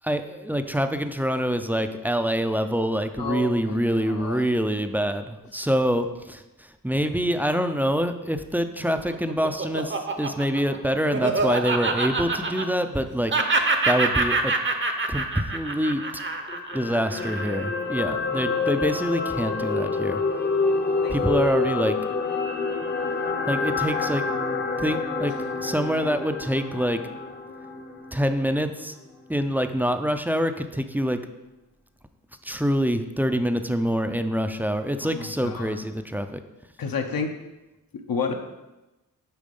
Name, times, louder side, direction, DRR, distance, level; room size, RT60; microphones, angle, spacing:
voice 1, 0.0-13.3 13.8-14.5 15.1-16.0 16.7-20.2 21.1-22.0 23.5-24.2 24.8-25.3 25.6-27.0 28.1-28.9 29.3-31.2 32.4-36.4, equal, 5° right, 8 dB, 0.4 m, -25 dB
voice 2, 3.2-4.5 21.0-21.2 35.0-35.7 36.8-37.4 37.9-38.3, left 5 dB, 75° left, 4 dB, 0.9 m, -31 dB
Laughter, 8.8-13.0 13.3-17.8, right 3 dB, 35° right, 0.7 m, -26 dB
sound 1, 16.5-28.8 29.1-29.3, left 4 dB, 30° left, 0.7 m, -27 dB
10.5 x 4.2 x 5.3 m, 1.0 s
wide cardioid pair, 160°, 35 cm